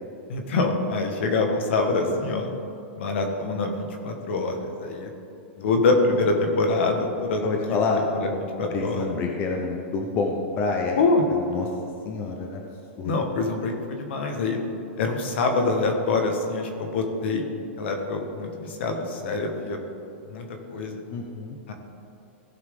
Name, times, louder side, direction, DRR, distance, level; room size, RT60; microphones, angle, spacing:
voice 1, 0.3-2.5 3.0-5.1 5.6-7.4 7.7-7.8 8.1-9.1 10.9-11.2 13.0-14.6 15.0-19.8 20.3-21.0 21.7-21.8, left 3 dB, 65° left, 4 dB, 1.6 m, -25 dB
voice 2, 7.4-8.0 8.7-11.0 11.4-11.7 12.0-12.6 13.0-13.1 21.1-21.6, left 4 dB, 30° left, 1 dB, 0.9 m, -27 dB
16.0 x 5.8 x 3.8 m, 2.6 s
supercardioid pair, 145°, 7 cm